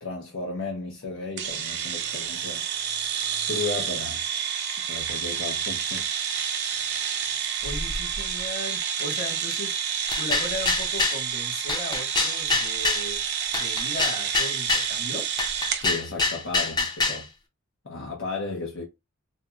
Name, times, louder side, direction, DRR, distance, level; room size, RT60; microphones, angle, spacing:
voice 1, 0.0-2.6 3.5-4.2 4.9-6.1 15.8-17.3 17.8-18.8, left 3 dB, 80° left, 0.7 m, -34 dB
sound 1, 1.4-15.9, right 8 dB, 60° right, 0.6 m, -29 dB
voice 2, 7.6-9.8 10.2-13.2 13.5-15.2, left 1 dB, 50° left, 1.4 m, -36 dB
sound 2, 10.1-11.2 11.7-13.1 13.5-14.9 15.4-17.2, left 3 dB, 20° left, 0.5 m, -26 dB
4.1 x 2.0 x 2.3 m
head